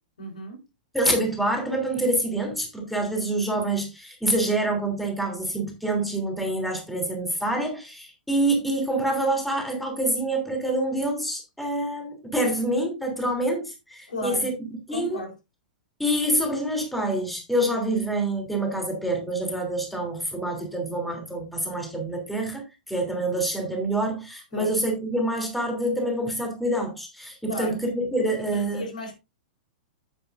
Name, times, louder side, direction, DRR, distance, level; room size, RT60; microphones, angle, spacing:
voice 1, 0.2-0.6 14.1-14.5 14.9-15.3 24.5-24.8 27.5-27.8 28.5-29.2, left 1 dB, 70° left, 3.6 m, -34 dB
voice 2, 0.9-14.5 14.9-15.2 16.0-28.8, right 1 dB, ahead, 2.9 m, -26 dB
10.0 x 9.0 x 2.5 m
figure-of-eight pair, 100°, 4 cm